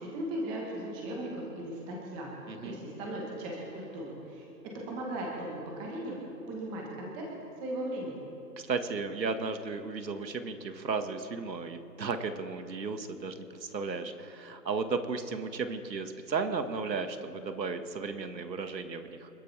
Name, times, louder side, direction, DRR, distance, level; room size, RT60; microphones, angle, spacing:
voice 1, 0.0-2.3 2.6-4.5 4.9-6.2 6.5-7.3 7.6-8.2, right 1 dB, 10° right, -2 dB, 1.2 m, -37 dB
voice 2, 2.5-2.8 8.6-19.3, right 4 dB, 85° right, 8 dB, 1.8 m, -34 dB
29.0 x 12.5 x 3.4 m, 2.7 s
hypercardioid pair, 165°, 50 cm